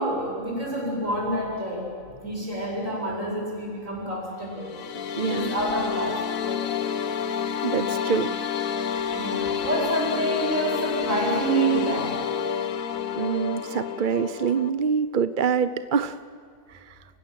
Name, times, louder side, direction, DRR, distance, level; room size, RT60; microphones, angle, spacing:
voice 1, 0.0-4.8 5.2-6.7 9.1-12.2, right 1 dB, 70° right, -3 dB, 8.2 m, -28 dB
sound 1, 4.5-14.7, left 7 dB, 85° left, 1.4 m, -29 dB
voice 2, 5.2-5.5 7.6-8.3 13.2-16.2, right 6 dB, 45° right, 13 dB, 0.8 m, -25 dB
29.5 x 16.0 x 7.7 m, 2.2 s
omnidirectional pair, 1.4 m